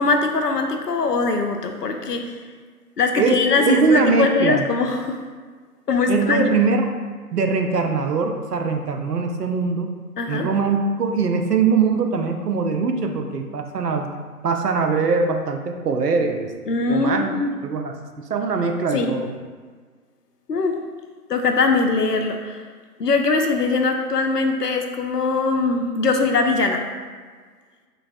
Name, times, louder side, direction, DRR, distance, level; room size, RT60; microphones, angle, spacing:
voice 1, 0.0-2.3 3.0-5.2 5.9-6.5 10.2-10.5 16.7-17.5 18.9-19.1 20.5-20.8 21.3-22.6 23.0-26.8, left 3 dB, 90° left, 4 dB, 0.6 m, -21 dB
voice 2, 3.2-4.6 6.1-6.9 7.3-9.9 10.3-14.1 14.4-16.5 16.9-17.3 17.6-19.3, right 4 dB, 85° right, 4 dB, 0.6 m, -22 dB
3.9 x 3.2 x 2.5 m, 1.5 s
figure-of-eight pair, 150°, 46 cm